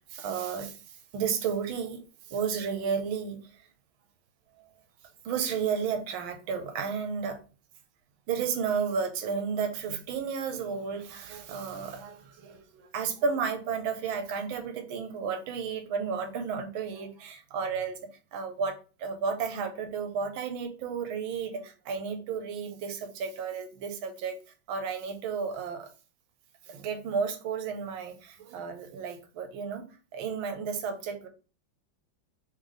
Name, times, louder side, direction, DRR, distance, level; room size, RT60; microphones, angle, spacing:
voice 1, 0.1-3.7 4.6-4.7 5.2-7.4 8.3-18.0 18.3-24.4 24.7-25.9 26.7-29.8 30.1-31.3, right 6 dB, 75° right, 7 dB, 1.6 m, -32 dB
3.8 x 3.2 x 3.8 m, 0.35 s
omnidirectional pair, 2.3 m